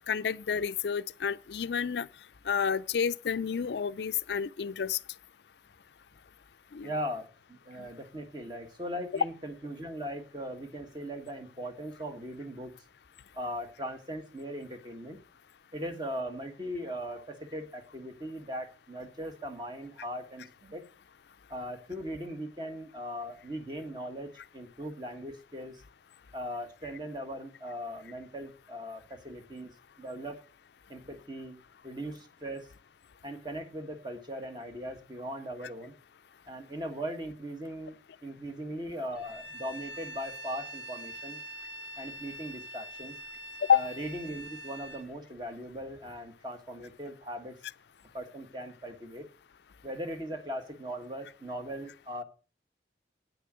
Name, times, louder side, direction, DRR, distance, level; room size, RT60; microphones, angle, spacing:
voice 1, 0.1-2.1 2.5-5.0 6.7-6.9 43.7-43.9, left 7 dB, 70° left, 0.4 m, -29 dB
voice 2, 6.8-12.7 13.3-15.2 15.7-20.8 21.5-25.8 26.3-30.4 30.9-32.7 33.2-35.9 36.5-41.4 42.0-43.1 43.7-47.6 48.1-49.2 49.8-52.2, equal, 25° right, 1.5 m, -39 dB
Bowed string instrument, 39.1-45.1, equal, 5° right, 2.0 m, -44 dB
9.2 x 6.8 x 6.3 m
head